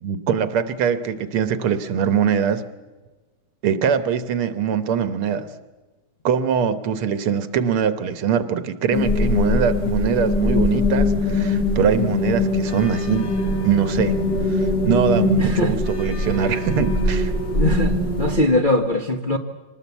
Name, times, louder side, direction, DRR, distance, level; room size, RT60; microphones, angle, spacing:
voice 1, 0.0-2.6 3.6-5.5 6.2-13.3 13.6-14.2 14.5-17.3, right 7 dB, 80° right, 12 dB, 2.0 m, -22 dB
sound 1, 8.9-18.4, left 2 dB, 55° left, 3.5 m, -22 dB
voice 2, 15.4-15.7 17.5-19.4, left 2 dB, 35° left, 4 dB, 0.8 m, -21 dB
24.5 x 19.5 x 8.2 m, 1.3 s
omnidirectional pair, 2.4 m